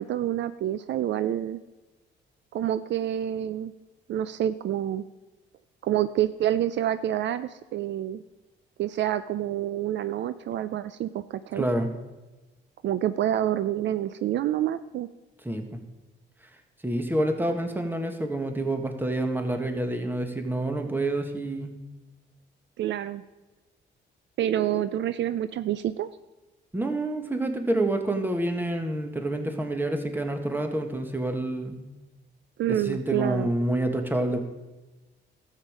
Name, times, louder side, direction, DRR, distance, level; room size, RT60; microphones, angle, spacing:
voice 1, 0.0-1.6 2.5-3.7 4.1-5.0 5.8-8.2 8.8-11.7 12.8-15.1 22.8-23.2 24.4-26.1 32.6-33.5, right 11 dB, 65° right, 13 dB, 0.4 m, -27 dB
voice 2, 11.5-11.9 15.4-15.6 16.8-21.7 26.7-31.8 32.7-34.4, right 1 dB, 10° right, 5 dB, 1.4 m, -28 dB
12.5 x 7.4 x 4.9 m, 1.1 s
cardioid pair, 90°, 20 cm